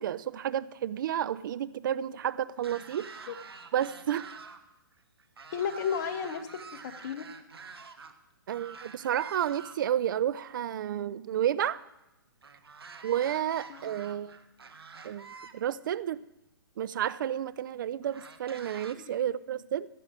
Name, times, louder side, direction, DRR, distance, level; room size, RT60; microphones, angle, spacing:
voice 1, 0.0-3.4 3.7-4.3 8.5-11.8 13.0-14.4 15.0-15.3 15.5-16.2 16.8-19.9, right 10 dB, 55° right, 17 dB, 0.6 m, -31 dB
sound 1, 2.6-4.6 4.9-8.1 8.5-10.0 12.4-15.5 16.5-16.6 18.0-18.9, right 5 dB, 90° right, 1.2 m, -47 dB
voice 2, 5.5-7.3 13.7-13.8 19.0-19.1, left 7 dB, 45° left, 7 dB, 1.3 m, -33 dB
16.0 x 13.0 x 3.7 m, 0.93 s
hypercardioid pair, 135°, 12 cm